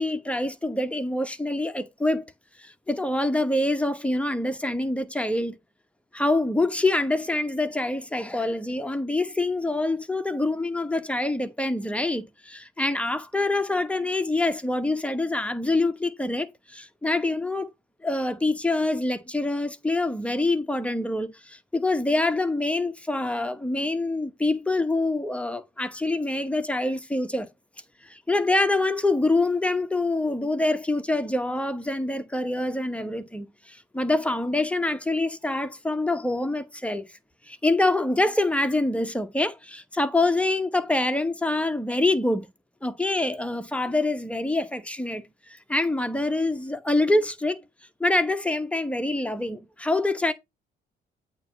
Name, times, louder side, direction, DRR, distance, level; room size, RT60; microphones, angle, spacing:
voice 1, 0.0-2.2 2.6-5.6 6.1-17.7 18.0-27.5 28.0-37.1 37.5-42.5 42.8-47.6 48.0-50.3, left 2 dB, 5° left, 1.0 m, -25 dB
8.6 x 3.0 x 5.7 m
cardioid pair, 90°, 20 cm